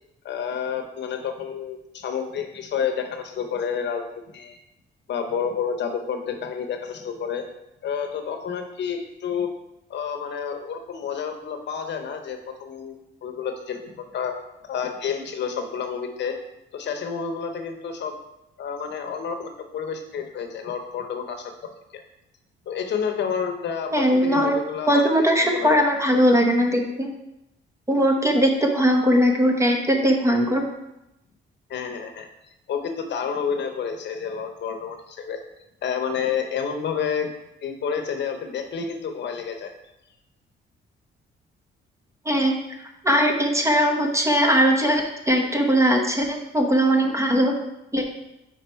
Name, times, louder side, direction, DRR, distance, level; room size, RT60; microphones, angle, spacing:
voice 1, 0.2-4.0 4.3-4.6 5.1-7.5 7.8-9.5 9.9-13.0 13.2-14.4 14.6-16.4 16.7-18.2 18.6-22.0 22.7-25.8 31.7-32.3 32.7-35.4 35.8-37.3 37.6-39.7, left 7 dB, 60° left, 5 dB, 0.9 m, -29 dB
voice 2, 23.9-24.6 24.9-27.1 27.9-30.6 42.3-42.5 43.0-47.5 47.9-48.0, equal, 15° right, 2 dB, 0.9 m, -20 dB
4.8 x 4.6 x 4.4 m, 0.89 s
cardioid pair, 90°, 20 cm